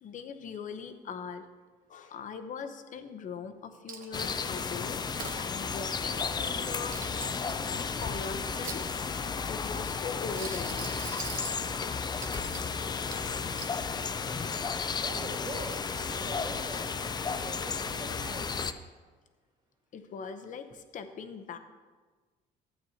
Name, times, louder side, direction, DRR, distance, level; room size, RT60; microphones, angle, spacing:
voice 1, 0.0-1.5 1.9-5.0 5.4-8.9 9.5-11.1 19.9-21.6, left 5 dB, 50° left, 8 dB, 0.8 m, -41 dB
Coin (dropping), 3.9-4.4 4.9-5.4 6.5-7.7 8.3-9.2 10.2-11.6 12.2-12.7 13.1-13.8, right 6 dB, 55° right, 0.9 m, -43 dB
sound 1, 4.1-18.7, left 5 dB, 25° left, 0.4 m, -33 dB
voice 2, 15.0-18.5, right 2 dB, 25° right, -3 dB, 2.3 m, -43 dB
12.5 x 8.5 x 2.8 m, 1.4 s
cardioid pair, 110°, 17 cm